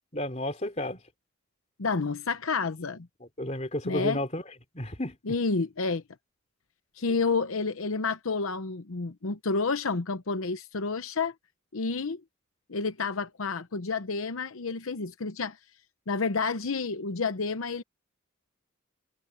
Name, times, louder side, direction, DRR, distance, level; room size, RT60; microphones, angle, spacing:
voice 1, 0.1-1.0 3.2-4.4 4.7-5.2, left 1 dB, 30° left, 3.3 m, -32 dB
voice 2, 1.8-3.1 3.8-4.2 5.3-6.0 7.0-11.3 11.7-12.2 12.7-15.6 16.1-17.8, left 4 dB, 85° left, 0.9 m, -29 dB
head